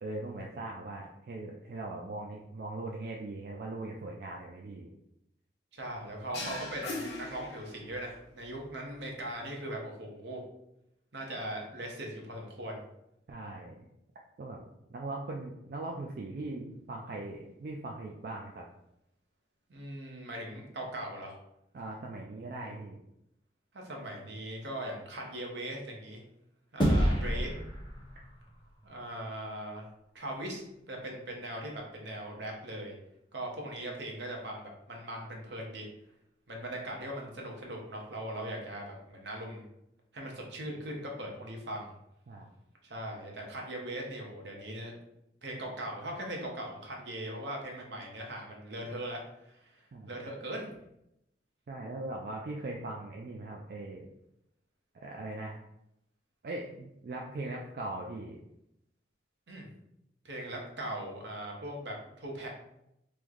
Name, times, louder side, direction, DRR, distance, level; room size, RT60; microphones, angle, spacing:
voice 1, 0.0-4.9 13.3-13.9 14.4-14.6 14.9-18.6 21.7-23.0 42.3-42.5 49.9-50.1 51.7-54.1 54.9-55.6 56.4-58.4, right 2 dB, 55° right, 0 dB, 0.3 m, -40 dB
voice 2, 5.7-10.4 11.1-12.8 19.7-21.4 23.7-26.2 26.7-27.5 28.8-29.9 30.1-32.9 33.3-35.9 36.5-39.7 40.1-41.9 42.8-44.9 45.4-50.7 59.5-59.7 60.2-62.5, right 1 dB, 80° right, 0 dB, 0.8 m, -40 dB
sound 1, 6.3-8.1, left 2 dB, 80° left, 0.8 m, -39 dB
sound 2, 26.8-29.4, equal, 25° left, 0.6 m, -30 dB
3.1 x 2.1 x 3.6 m, 0.81 s
head